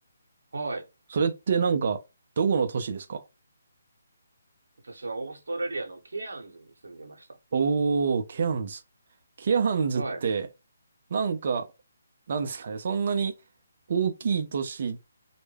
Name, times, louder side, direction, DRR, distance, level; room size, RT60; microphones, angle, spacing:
voice 1, 0.5-0.9 4.8-7.3 9.9-10.2, right 2 dB, 85° right, 0.8 m, -35 dB
voice 2, 1.1-2.0 2.4-3.2 7.5-8.8 9.4-10.5 11.1-11.7 12.3-13.3 13.9-15.0, right 5 dB, 50° right, 0.4 m, -26 dB
2.2 x 2.0 x 3.2 m
hypercardioid pair, 160°, 0 cm